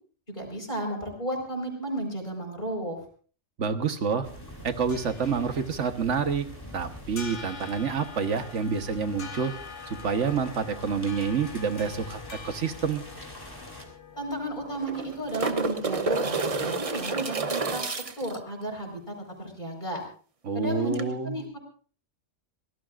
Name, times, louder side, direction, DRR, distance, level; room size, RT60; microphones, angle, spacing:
voice 1, 0.3-3.0 14.2-20.0 20.5-21.6, right 1 dB, 40° left, 2 dB, 5.1 m, -33 dB
voice 2, 3.6-4.3 4.6-6.4 6.7-9.5 9.9-13.0 20.4-21.4, right 6 dB, 75° right, 8 dB, 1.6 m, -28 dB
sound 1, 4.2-13.8, left 1 dB, 20° left, 3.2 m, -45 dB
sound 2, 4.5-17.2, left 5 dB, 70° left, 2.0 m, -46 dB
sound 3, 13.2-13.3 13.5-13.6 14.7-18.4 20.9-21.0, right 3 dB, 30° right, 0.9 m, -29 dB
25.0 x 18.0 x 2.5 m, 0.42 s
omnidirectional pair, 1.3 m